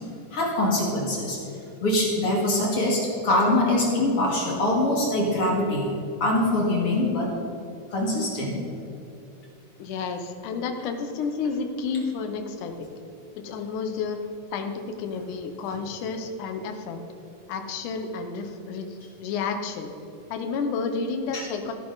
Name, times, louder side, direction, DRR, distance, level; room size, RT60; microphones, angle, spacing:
voice 1, 0.3-1.4 1.8-5.9 6.2-7.3 7.9-8.6 21.3-21.4, left 1 dB, 45° left, -3 dB, 2.7 m, -23 dB
voice 2, 9.8-12.9 13.4-14.2 14.5-17.0 17.5-19.9 20.3-21.7, left 5 dB, 70° left, 6 dB, 2.4 m, -31 dB
14.5 x 10.0 x 4.0 m, 2.9 s
omnidirectional pair, 3.9 m